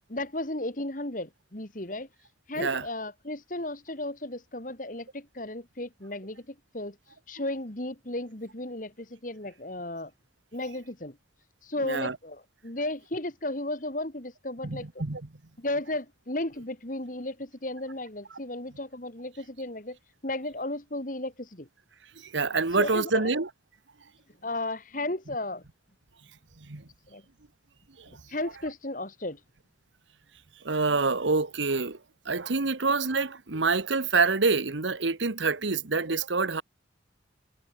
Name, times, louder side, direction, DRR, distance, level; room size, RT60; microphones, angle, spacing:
voice 1, 0.1-2.1 2.5-7.0 7.3-10.1 10.5-11.2 11.6-15.0 15.6-20.0 20.2-21.7 22.7-23.3 24.4-25.6 27.1-27.2 28.3-29.4, left 1 dB, 45° left, 2.6 m, -34 dB
voice 2, 11.8-12.1 14.6-15.2 22.2-23.5 26.7-26.8 28.0-28.1 30.6-32.0 32.2-36.6, right 4 dB, 85° right, 1.4 m, -26 dB
head